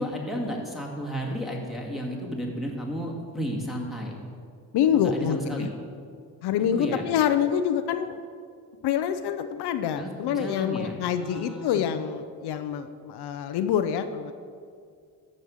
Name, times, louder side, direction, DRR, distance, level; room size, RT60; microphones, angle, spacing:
voice 1, 0.0-4.2 4.9-5.7 6.6-7.0 10.0-11.9, equal, ahead, -3 dB, 1.9 m, -33 dB
voice 2, 4.7-5.7 6.4-8.2 8.8-14.3, left 9 dB, 80° left, 9 dB, 0.7 m, -26 dB
13.5 x 5.4 x 6.3 m, 2.2 s
cardioid pair, 115°, 39 cm